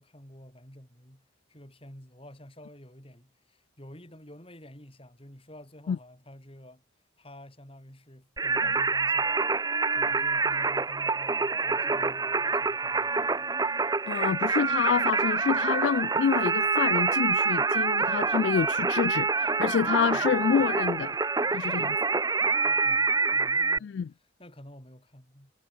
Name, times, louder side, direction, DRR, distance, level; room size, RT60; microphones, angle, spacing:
voice 1, 0.0-6.8 7.2-9.5 9.9-13.5 20.1-20.6 22.6-23.9 24.4-25.5, left 1 dB, 30° left, 6.3 m, -50 dB
Singing, 8.4-23.8, right 4 dB, 20° right, 0.6 m, -26 dB
voice 2, 14.1-21.1 21.5-22.0 23.8-24.1, left 7 dB, 65° left, 0.3 m, -27 dB
head